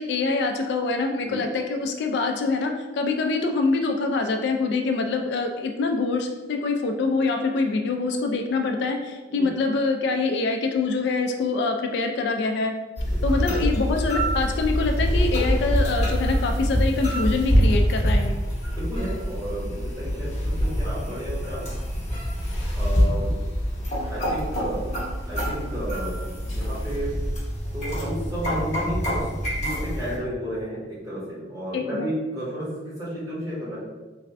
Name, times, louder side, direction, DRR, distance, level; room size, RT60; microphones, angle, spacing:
voice 1, 0.0-12.7 13.2-18.3 31.7-32.1, left 3 dB, 65° left, 4 dB, 0.3 m, -25 dB
sound 1, 13.0-30.2, equal, 40° left, 1.0 m, -25 dB
voice 2, 13.1-13.6 18.7-21.8 22.8-23.3 24.1-24.8 25.3-27.2 27.7-29.2 29.5-33.8, equal, 20° right, -9 dB, 1.3 m, -33 dB
3.3 x 2.5 x 3.2 m, 1.2 s
head